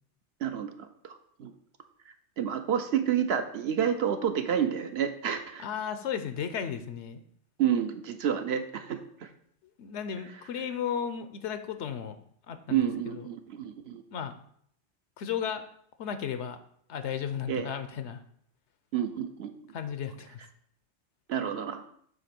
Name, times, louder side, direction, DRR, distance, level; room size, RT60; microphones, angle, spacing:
voice 1, 0.4-1.5 2.4-5.6 7.6-9.0 12.7-14.0 17.5-17.7 18.9-19.5 21.3-21.9, right 9 dB, 70° right, 7 dB, 0.9 m, -29 dB
voice 2, 5.6-7.2 9.8-12.2 12.5-13.3 14.1-14.4 15.2-15.6 16.0-16.6 16.9-18.2 19.7-20.4, left 8 dB, 85° left, 9 dB, 1.0 m, -34 dB
7.8 x 2.9 x 6.0 m, 0.65 s
omnidirectional pair, 1.2 m